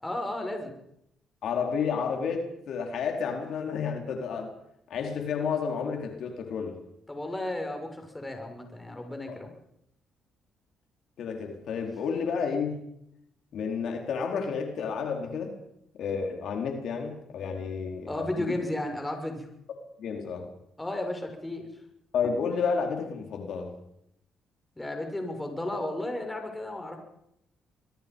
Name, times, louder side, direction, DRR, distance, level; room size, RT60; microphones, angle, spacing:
voice 1, 0.0-0.7 7.1-9.5 18.1-19.5 20.8-21.7 24.8-27.0, left 1 dB, 15° left, 4 dB, 6.6 m, -33 dB
voice 2, 1.4-4.5 4.9-6.8 9.3-9.4 11.2-12.8 13.5-15.5 16.0-18.5 20.0-20.5 22.1-23.7, left 6 dB, 70° left, 3 dB, 4.5 m, -31 dB
26.5 x 22.0 x 5.6 m, 0.76 s
cardioid pair, 90°, 0 cm